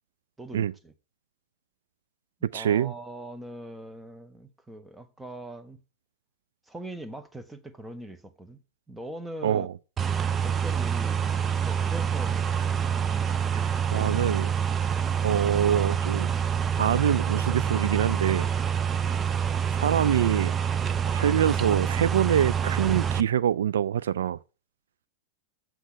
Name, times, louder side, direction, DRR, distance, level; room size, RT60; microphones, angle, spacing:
voice 1, 0.4-0.9 2.5-5.8 6.7-8.6 8.9-9.7 10.4-11.4 11.6-12.7 18.9-19.1, right 1 dB, 10° right, 1.1 m, -41 dB
voice 2, 2.5-2.9 9.4-9.7 13.5-13.6 13.9-14.5 15.2-16.3 16.8-18.5 19.8-20.5 21.1-24.4, right 9 dB, 80° right, 0.3 m, -25 dB
sound 1, 10.0-23.2, right 7 dB, 25° right, 0.6 m, -26 dB
7.8 x 7.6 x 4.0 m
hypercardioid pair, 110°, 0 cm